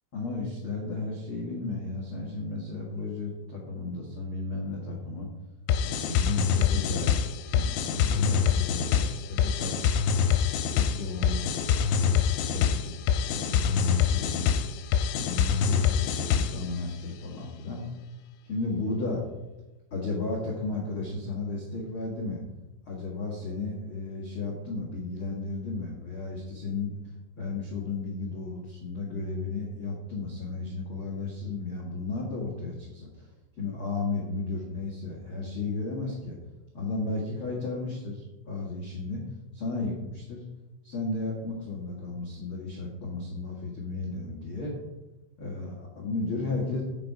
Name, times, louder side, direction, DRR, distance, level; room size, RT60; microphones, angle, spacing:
voice 1, 0.1-5.3 5.8-7.1 7.4-10.1 10.7-14.5 15.1-17.9 18.4-19.2 19.9-22.4 22.8-27.0 27.4-33.3 33.6-36.4 36.7-39.2 39.5-40.4 40.8-44.8 45.4-46.8, left 3 dB, 70° left, -2 dB, 1.2 m, -34 dB
sound 1, 5.7-16.7, left 7 dB, 90° left, 3.2 m, -25 dB
9.5 x 9.3 x 4.8 m, 1.0 s
omnidirectional pair, 5.8 m